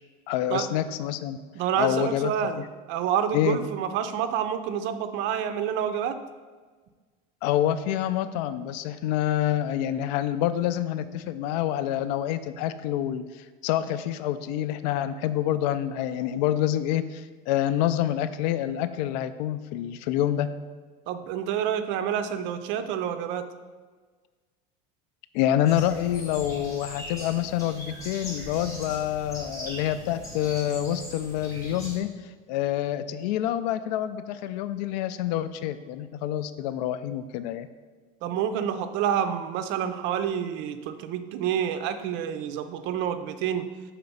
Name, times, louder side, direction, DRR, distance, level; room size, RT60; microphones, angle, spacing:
voice 1, 0.3-1.4 1.8-2.3 2.6-2.7 3.3-3.6 7.4-20.5 25.3-32.1 32.5-37.7, left 11 dB, 90° left, 13 dB, 0.4 m, -27 dB
voice 2, 1.5-6.2 21.1-23.4 38.2-43.7, right 9 dB, 65° right, 9 dB, 0.6 m, -28 dB
sound 1, 25.6-32.0, left 1 dB, 15° left, 1.9 m, -40 dB
5.8 x 4.3 x 5.4 m, 1.4 s
cardioid pair, 130°, 21 cm